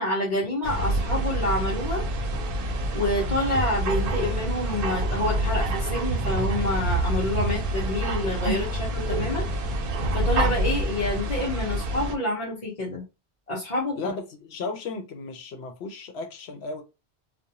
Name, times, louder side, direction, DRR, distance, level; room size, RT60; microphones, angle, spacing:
voice 1, 0.0-2.0 2.9-9.5 10.1-13.0 13.5-14.0, left 1 dB, 45° left, 1.0 m, -28 dB
sound 1, 0.6-12.2, right 1 dB, 65° right, 0.7 m, -27 dB
sound 2, 2.3-9.9, equal, 10° right, 0.5 m, -40 dB
voice 2, 13.9-16.8, left 3 dB, 85° left, 0.9 m, -35 dB
2.5 x 2.1 x 2.8 m
omnidirectional pair, 1.0 m